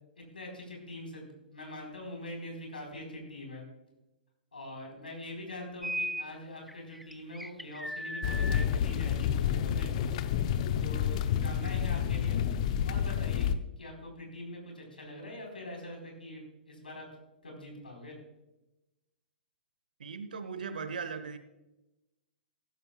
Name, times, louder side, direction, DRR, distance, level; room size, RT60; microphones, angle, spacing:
voice 1, 0.3-3.6 4.5-9.9 10.8-12.4 12.8-13.5 13.8-16.4 16.7-17.1 17.4-18.2, left 1 dB, 80° left, 1 dB, 4.1 m, -43 dB
sound 1, 5.8-6.3 6.7-8.6, equal, ahead, 0.4 m, -37 dB
sound 2, 8.2-13.5, left 9 dB, 45° left, 0.7 m, -29 dB
voice 2, 20.0-21.4, right 5 dB, 65° right, 11 dB, 1.2 m, -38 dB
15.5 x 13.5 x 2.3 m, 0.96 s
figure-of-eight pair, 110°, 5 cm